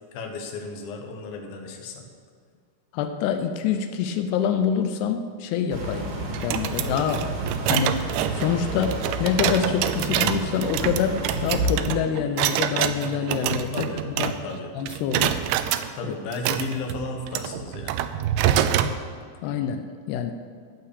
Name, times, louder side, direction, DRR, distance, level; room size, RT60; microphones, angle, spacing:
voice 1, 0.1-2.0 13.7-14.0 14.4-14.7 16.0-18.0, left 3 dB, 65° left, 3 dB, 2.6 m, -34 dB
voice 2, 2.9-13.9 14.2-14.4 14.8-15.4 16.0-16.1 19.4-20.3, left 7 dB, 90° left, 7 dB, 2.3 m, -26 dB
sound 1, 5.7-11.7, right 2 dB, 60° right, 2.9 m, -31 dB
sound 2, 6.3-14.6 14.9-15.9 16.3-19.0, right 10 dB, 80° right, 2.7 m, -26 dB
14.5 x 4.8 x 8.4 m, 2.1 s
omnidirectional pair, 5.5 m